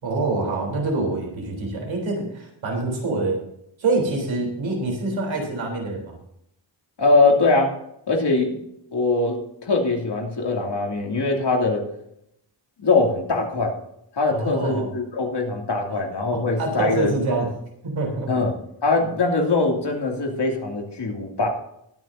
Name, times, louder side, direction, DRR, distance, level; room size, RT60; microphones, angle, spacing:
voice 1, 0.0-3.4 3.8-6.2 14.3-14.9 16.3-17.5 17.8-18.3, right 3 dB, 80° right, 0 dB, 3.8 m, -25 dB
voice 2, 7.0-7.7 8.1-8.6 8.9-11.8 12.8-13.7 14.2-17.2 18.3-18.5 18.8-21.5, left 3 dB, 60° left, 0 dB, 2.8 m, -22 dB
20.5 x 9.1 x 2.7 m, 0.77 s
cardioid pair, 85°, 45 cm